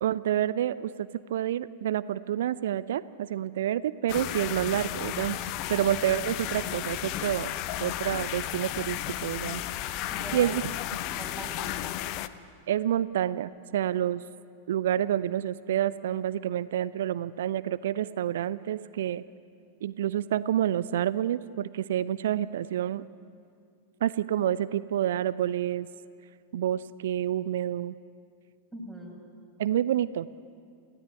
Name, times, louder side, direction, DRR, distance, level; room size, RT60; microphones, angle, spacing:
voice 1, 0.0-5.4 5.7-7.5 7.8-10.0 10.3-10.6 12.7-14.2 14.7-19.2 19.8-23.0 24.0-25.9 26.5-27.9 29.6-30.3, right 11 dB, 60° right, 16 dB, 0.6 m, -28 dB
sound 1, 4.1-12.3, left 13 dB, 40° left, 0.9 m, -34 dB
voice 2, 5.8-6.2 10.1-10.7 11.1-12.2 28.7-29.2, right 1 dB, ahead, -3 dB, 7.9 m, -43 dB
28.0 x 16.5 x 9.8 m, 2.4 s
figure-of-eight pair, 90°, 0 cm